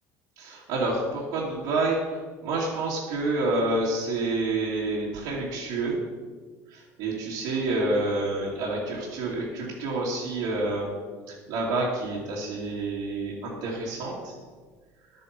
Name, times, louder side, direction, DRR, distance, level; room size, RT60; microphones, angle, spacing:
voice 1, 0.4-6.0 6.7-10.9 11.5-14.3, right 2 dB, 85° right, -6 dB, 2.8 m, -28 dB
10.5 x 9.7 x 5.4 m, 1.4 s
cardioid pair, 115°, 7 cm